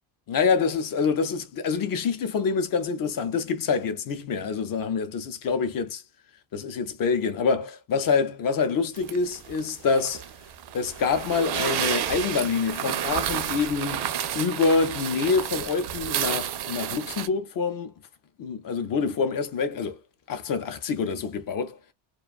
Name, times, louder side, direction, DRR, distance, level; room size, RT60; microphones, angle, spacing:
voice 1, 0.3-6.0 6.5-10.2 10.7-17.9 18.4-20.0 20.3-21.8, left 5 dB, 45° left, 0.6 m, -26 dB
sound 1, 9.0-17.3, right 10 dB, 55° right, 0.5 m, -31 dB
2.5 x 2.3 x 2.3 m
cardioid pair, 150°, 49 cm